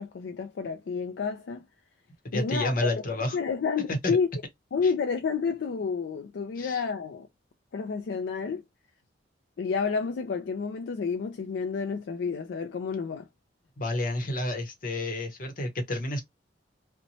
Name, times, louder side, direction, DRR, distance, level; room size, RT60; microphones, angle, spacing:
voice 1, 0.0-1.7 2.3-3.0 3.3-4.3 4.7-7.3 7.7-8.6 9.6-13.3, left 5 dB, 75° left, 0.4 m, -30 dB
voice 2, 2.2-3.4 3.9-4.2 6.6-6.8 13.8-16.2, left 1 dB, 50° left, 0.8 m, -30 dB
2.6 x 2.1 x 2.9 m
head